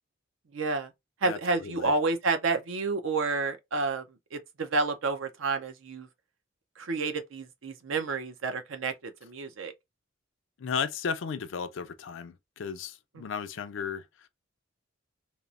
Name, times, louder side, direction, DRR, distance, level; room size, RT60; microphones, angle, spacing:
voice 1, 0.5-0.9 1.2-4.0 4.3-6.1 6.8-9.7 13.2-13.3, right 3 dB, 70° right, 0.5 m, -30 dB
voice 2, 1.2-1.9 10.6-14.3, left 6 dB, 65° left, 0.4 m, -35 dB
2.9 x 2.0 x 2.5 m
head